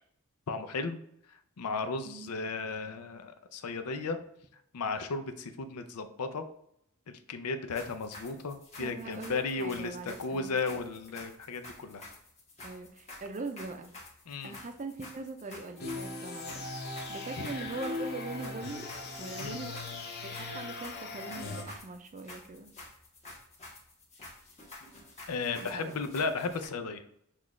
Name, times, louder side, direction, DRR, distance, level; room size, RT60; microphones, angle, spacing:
voice 1, 0.5-1.0 1.6-4.2 4.7-6.4 7.1-12.0 14.3-14.6 19.4-19.6 25.3-27.0, left 4 dB, 90° left, 8 dB, 0.5 m, -35 dB
sound 1, 7.7-26.7, left 2 dB, 30° left, 1.2 m, -50 dB
voice 2, 8.8-10.8 12.6-13.9 14.4-16.7 17.1-18.9 19.2-20.0 20.3-22.7 25.6-25.9, right 3 dB, 35° right, 7 dB, 0.4 m, -42 dB
sound 2, 15.8-21.6, left 3 dB, 45° left, 0.7 m, -39 dB
5.9 x 2.4 x 3.1 m, 0.72 s
head